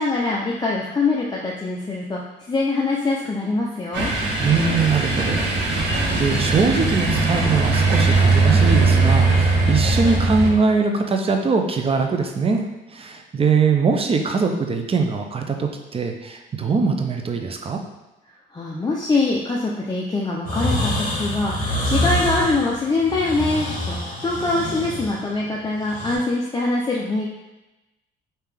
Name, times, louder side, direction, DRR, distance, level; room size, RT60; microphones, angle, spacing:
voice 1, 0.0-2.2 2.5-4.1 18.5-27.3, left 3 dB, 20° left, -4 dB, 0.5 m, -23 dB
sound 1, 3.9-10.5, right 3 dB, 60° right, 1.1 m, -19 dB
voice 2, 4.4-12.7 12.9-17.8, right 4 dB, 30° right, 4 dB, 0.5 m, -22 dB
sound 2, 20.4-26.2, left 1 dB, 45° left, 1.3 m, -26 dB
3.3 x 2.8 x 3.5 m, 1.0 s
cardioid pair, 90°, 20 cm